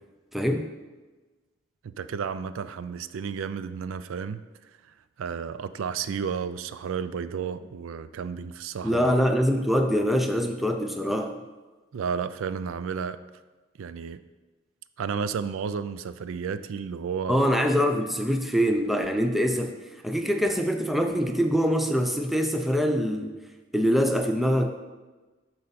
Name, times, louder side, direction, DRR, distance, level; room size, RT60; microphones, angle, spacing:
voice 1, 0.3-0.7 8.8-11.4 17.3-23.4 23.7-24.8, equal, ahead, 5 dB, 0.4 m, -24 dB
voice 2, 1.8-9.1 11.9-13.2 13.8-14.2 15.0-17.4, right 6 dB, 75° right, 13 dB, 0.4 m, -32 dB
12.0 x 4.4 x 4.1 m, 1.3 s
head